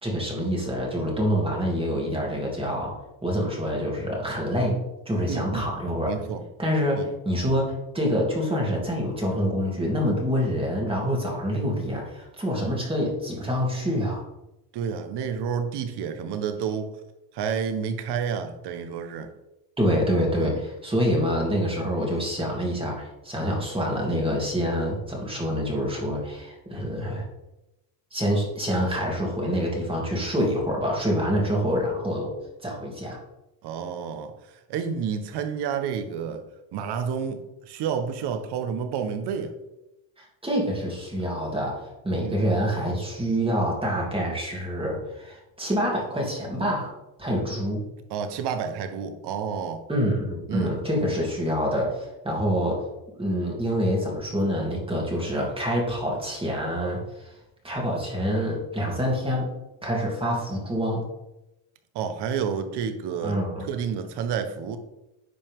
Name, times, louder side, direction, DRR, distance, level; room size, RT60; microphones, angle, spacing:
voice 1, 0.0-2.9 3.2-4.8 5.1-6.1 6.6-14.2 19.8-27.3 28.1-32.3 32.6-33.2 40.2-46.9 47.2-47.8 49.9-52.9 53.2-57.4 57.6-59.5 59.8-61.1 63.2-63.7, equal, 10° right, -2 dB, 2.8 m, -26 dB
voice 2, 5.3-5.7 6.1-6.4 7.0-7.1 14.7-16.9 17.3-19.3 20.4-20.6 33.6-34.3 34.7-36.4 36.7-39.5 42.1-42.4 48.1-49.8 50.5-50.8 61.9-64.8, right 7 dB, 55° right, 8 dB, 1.3 m, -30 dB
10.0 x 5.5 x 3.7 m, 0.93 s
supercardioid pair, 110°, 48 cm